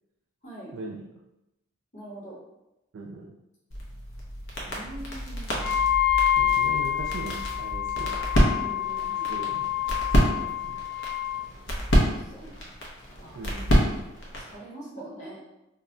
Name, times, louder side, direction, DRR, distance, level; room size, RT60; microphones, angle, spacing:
voice 1, 0.7-1.2 2.9-3.4 6.4-8.2 9.0-9.7 10.2-10.8 13.3-14.0, right 3 dB, 60° right, -1 dB, 0.3 m, -40 dB
voice 2, 1.9-2.4 4.6-5.9 8.4-9.3 12.1-12.5 13.2-13.4 14.5-15.4, right 1 dB, 35° left, -6 dB, 0.9 m, -43 dB
sound 1, 3.7-14.6, equal, 60° left, 0.7 m, -28 dB
Wind instrument woodwind instrument, 5.6-11.4, left 10 dB, 10° right, 0.6 m, -27 dB
2.3 x 2.0 x 3.7 m, 0.93 s
head